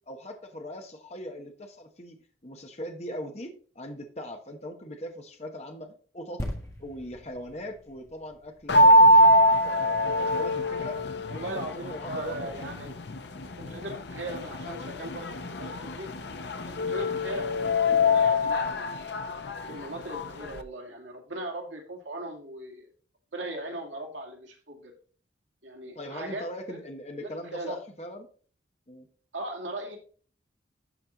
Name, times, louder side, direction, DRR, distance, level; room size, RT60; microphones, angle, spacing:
voice 1, 0.1-2.2 2.4-6.5 6.8-11.0 11.3-12.5 19.7-19.8 25.9-28.3 28.9-29.1, equal, 35° left, 4 dB, 1.1 m, -40 dB
sound 1, 6.4-10.0 10.6-10.7, left 1 dB, 15° left, 1.5 m, -40 dB
sound 2, 8.7-20.6, left 1 dB, 65° left, 0.8 m, -24 dB
voice 2, 11.3-12.9 13.6-16.1 16.6-19.0 19.7-22.9 23.3-24.9 25.6-26.8 27.2-27.8 29.3-30.0, right 1 dB, 85° right, 2 dB, 2.2 m, -38 dB
12.0 x 4.4 x 3.9 m, 0.42 s
head